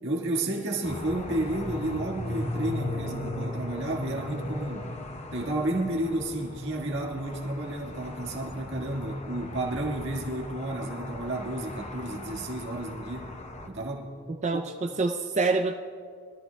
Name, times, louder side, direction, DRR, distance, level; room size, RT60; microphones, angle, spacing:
voice 1, 0.0-4.9 5.3-13.3 13.7-14.1, right 1 dB, 55° right, -1 dB, 1.7 m, -31 dB
sound 1, 0.8-13.7, left 1 dB, 30° left, 0.8 m, -38 dB
voice 2, 14.4-15.7, right 3 dB, 30° right, 5 dB, 0.5 m, -26 dB
23.0 x 13.5 x 2.3 m, 2.2 s
head